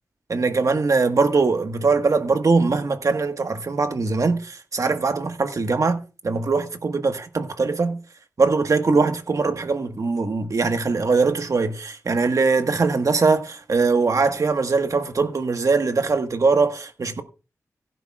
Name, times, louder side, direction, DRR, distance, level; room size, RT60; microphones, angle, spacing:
voice 1, 0.3-8.0 8.4-17.2, right 4 dB, 60° right, 1.5 m, -21 dB
15.5 x 10.5 x 2.4 m
wide cardioid pair, 70°, 6 cm